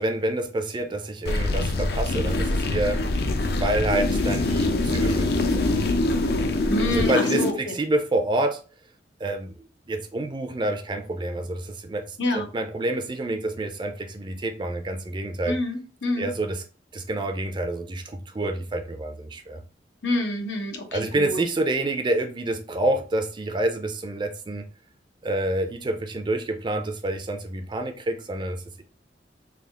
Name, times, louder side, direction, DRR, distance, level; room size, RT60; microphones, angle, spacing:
voice 1, 0.0-3.0 3.5-5.7 6.9-8.6 9.2-9.5 9.9-15.5 16.2-16.6 16.9-19.6 20.9-24.7 25.2-28.8, right 2 dB, 25° right, 0.4 m, -28 dB
sound 1, 1.2-7.5, left 2 dB, 60° left, 0.5 m, -24 dB
voice 2, 6.7-7.7 12.2-12.5 15.5-16.3 20.0-21.4, left 2 dB, 90° left, 0.9 m, -27 dB
3.5 x 2.4 x 3.5 m
head